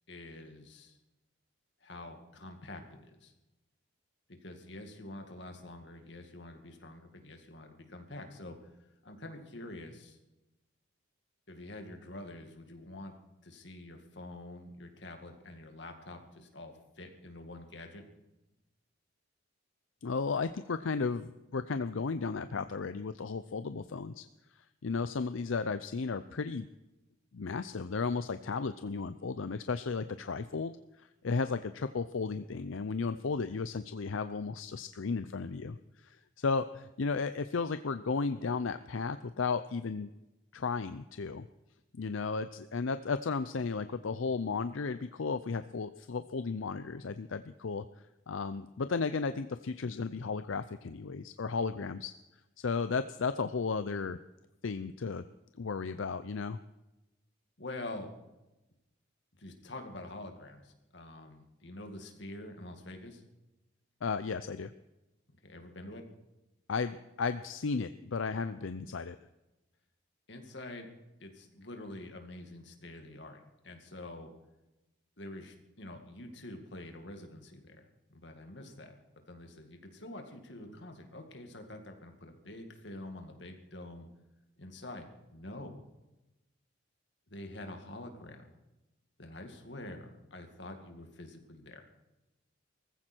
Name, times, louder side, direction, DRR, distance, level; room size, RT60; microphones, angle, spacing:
voice 1, 0.1-1.0 1.8-3.3 4.4-8.7 9.0-10.2 11.5-13.1 13.4-18.0 57.6-58.1 59.4-63.2 65.4-66.0 68.9-69.0 70.3-70.9 71.2-74.3 75.2-79.0 79.3-84.1 84.6-85.8 87.3-88.5 89.2-91.8, left 1 dB, 60° left, 4 dB, 2.3 m, -46 dB
voice 2, 20.0-24.3 24.8-26.7 27.3-30.7 31.0-40.1 40.5-41.5 41.9-47.8 48.3-52.1 52.6-54.2 54.6-55.2 55.6-56.6 64.0-64.7 66.7-69.2, left 4 dB, 80° left, 11 dB, 0.6 m, -34 dB
19.0 x 15.0 x 4.5 m, 0.99 s
head